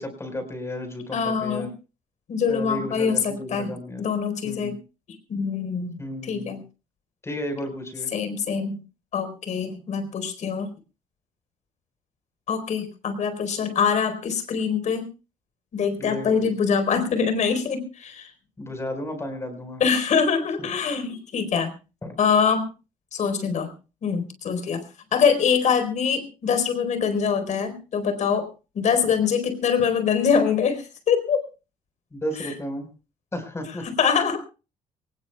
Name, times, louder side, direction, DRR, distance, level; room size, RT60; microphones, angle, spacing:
voice 1, 0.0-1.7 2.5-4.1 4.4-4.8 6.0-6.6 7.2-8.1 16.0-16.5 18.6-19.8 22.0-22.1 32.1-32.9 33.3-33.9, left 1 dB, 20° left, 6 dB, 4.9 m, -33 dB
voice 2, 1.1-1.7 2.3-4.7 5.3-6.6 8.1-8.8 9.1-10.7 12.5-15.0 15.7-18.3 19.8-21.7 22.2-22.7 23.1-23.7 24.0-24.8 25.1-28.5 28.7-31.4 32.4-32.5 33.8-34.4, left 6 dB, 55° left, 9 dB, 4.4 m, -24 dB
24.0 x 19.5 x 2.4 m, 0.33 s
cardioid pair, 115°, 14 cm